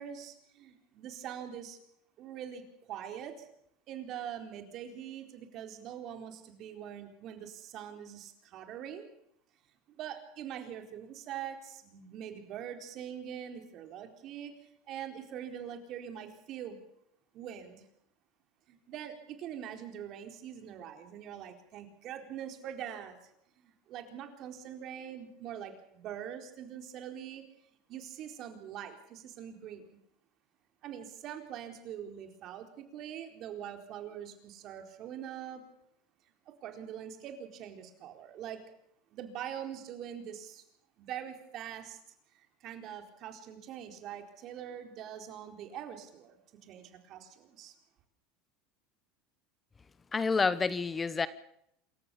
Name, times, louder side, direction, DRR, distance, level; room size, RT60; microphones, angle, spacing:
voice 1, 0.0-1.8 2.2-3.5 3.9-9.0 9.9-14.5 14.9-16.8 17.3-17.9 18.7-23.2 23.6-27.4 27.9-30.0 30.8-35.6 36.5-38.6 39.1-40.6 41.0-42.0 42.3-47.7, right 9 dB, 50° right, 4.2 m, -43 dB
voice 2, 50.1-51.3, left 4 dB, 20° left, 0.9 m, -28 dB
27.0 x 14.5 x 7.0 m
supercardioid pair, 120°, 0 cm